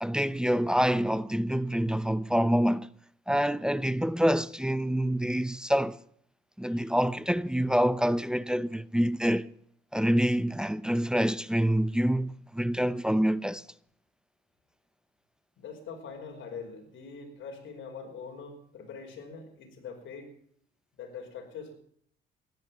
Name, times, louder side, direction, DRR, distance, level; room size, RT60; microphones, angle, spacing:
voice 1, 0.0-2.9 3.3-6.0 6.6-9.5 9.9-13.6, equal, 5° right, 0.7 m, -26 dB
voice 2, 15.6-20.3 20.9-21.8, left 5 dB, 75° left, 5.1 m, -43 dB
16.0 x 12.0 x 7.5 m
cardioid pair, 90°, 20 cm